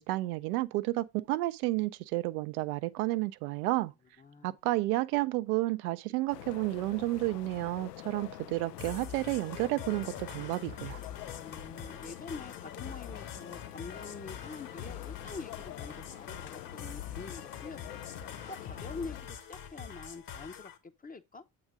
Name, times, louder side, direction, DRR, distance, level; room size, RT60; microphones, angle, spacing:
voice 1, 0.0-3.9 4.4-11.0, right 18 dB, 65° right, 0.6 m, -31 dB
voice 2, 4.2-4.5 11.4-18.0 18.5-21.4, left 4 dB, 20° left, 0.8 m, -45 dB
sound 1, 6.3-19.2, left 13 dB, 80° left, 0.6 m, -46 dB
sound 2, 8.8-20.8, left 8 dB, 45° left, 1.3 m, -45 dB
7.9 x 3.9 x 4.8 m
figure-of-eight pair, 50°, 48 cm